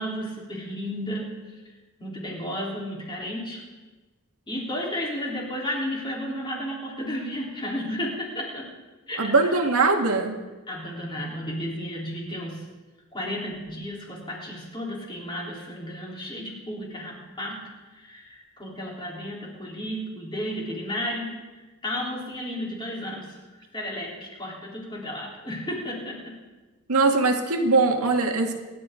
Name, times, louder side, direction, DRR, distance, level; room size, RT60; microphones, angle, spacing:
voice 1, 0.0-1.6 2.0-3.6 4.5-8.7 9.1-9.6 10.7-12.6 13.1-23.4 23.7-26.4, equal, 20° left, -3 dB, 3.7 m, -33 dB
voice 2, 9.2-10.4 26.9-28.5, right 3 dB, 85° right, 3 dB, 1.9 m, -21 dB
25.0 x 11.5 x 3.8 m, 1.2 s
head